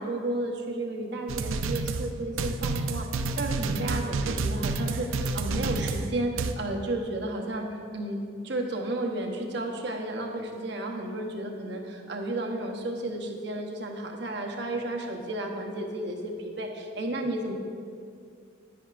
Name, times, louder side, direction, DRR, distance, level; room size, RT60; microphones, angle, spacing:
voice 1, 0.0-3.1 3.4-8.2 8.4-17.5, right 1 dB, 60° right, 2 dB, 0.9 m, -32 dB
sound 1, 1.3-6.5, right 3 dB, 90° right, 0.5 m, -30 dB
10.5 x 9.6 x 2.5 m, 2.3 s
head